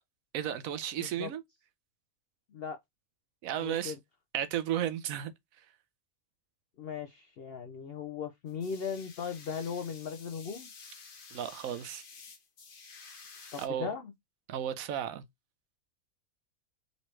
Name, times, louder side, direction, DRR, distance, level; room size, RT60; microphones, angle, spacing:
voice 1, 0.3-1.4 3.4-3.9 4.3-5.3 11.3-12.0 13.6-13.9 14.5-15.2, right 10 dB, 85° right, 1.0 m, -34 dB
voice 2, 1.0-1.3 2.5-2.8 3.6-4.0 6.8-10.7 13.5-14.1, left 6 dB, 60° left, 0.6 m, -38 dB
sound 1, 8.5-13.7, left 5 dB, 45° left, 1.0 m, -51 dB
4.0 x 2.9 x 3.1 m
omnidirectional pair, 1.4 m